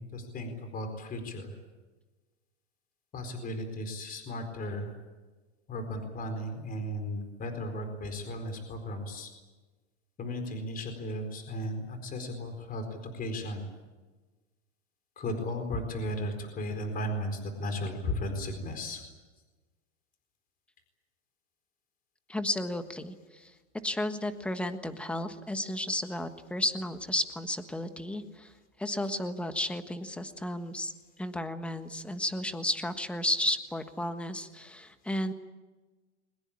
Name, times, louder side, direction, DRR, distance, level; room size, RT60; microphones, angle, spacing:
voice 1, 0.0-1.5 3.1-4.9 5.7-9.3 10.2-13.7 15.2-19.0, left 1 dB, 25° left, 7 dB, 4.3 m, -35 dB
voice 2, 22.3-23.5 23.8-28.5 28.8-30.9 31.2-35.3, left 1 dB, 5° left, 8 dB, 1.4 m, -33 dB
23.0 x 21.0 x 8.8 m, 1.3 s
supercardioid pair, 140°, 35 cm